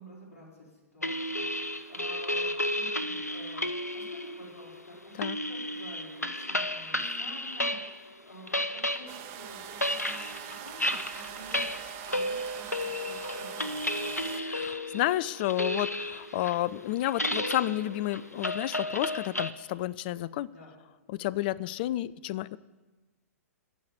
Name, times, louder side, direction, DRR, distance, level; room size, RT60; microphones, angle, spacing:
voice 1, 0.0-7.8 8.2-11.6 12.0-14.0 20.5-20.7, equal, 55° left, -3 dB, 4.9 m, -50 dB
sound 1, 1.0-8.1 8.3-19.5, left 1 dB, 85° left, 0.7 m, -33 dB
sound 2, 9.1-14.4, right 10 dB, 30° right, 1.0 m, -42 dB
voice 2, 14.4-20.5 21.1-22.6, left 15 dB, 35° left, 21 dB, 0.4 m, -31 dB
15.0 x 5.7 x 8.6 m, 1.2 s
figure-of-eight pair, 110°, 8 cm